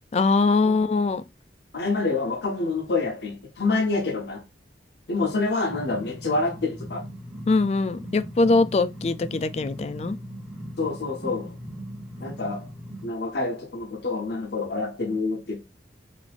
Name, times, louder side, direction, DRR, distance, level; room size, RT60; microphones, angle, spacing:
voice 1, 0.1-1.2 7.5-10.2, left 3 dB, 35° left, 0.3 m, -22 dB
voice 2, 1.7-4.4 5.1-7.0 10.8-11.5 12.2-12.7 13.0-15.6, left 3 dB, 70° left, 0.7 m, -27 dB
sound 1, 5.7-13.1, equal, 5° right, 0.7 m, -39 dB
5.0 x 2.6 x 3.4 m
head